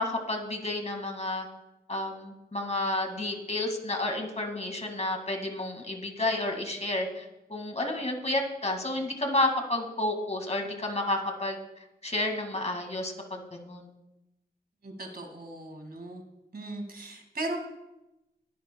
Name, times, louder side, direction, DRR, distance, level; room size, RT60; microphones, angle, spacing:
voice 1, 0.0-1.5 1.9-11.6 12.0-13.9, left 2 dB, 40° left, 3 dB, 2.0 m, -31 dB
voice 2, 14.8-16.2 16.5-17.6, right 2 dB, 65° right, 3 dB, 2.0 m, -37 dB
21.0 x 11.0 x 2.3 m, 0.93 s
wide cardioid pair, 90°, 17 cm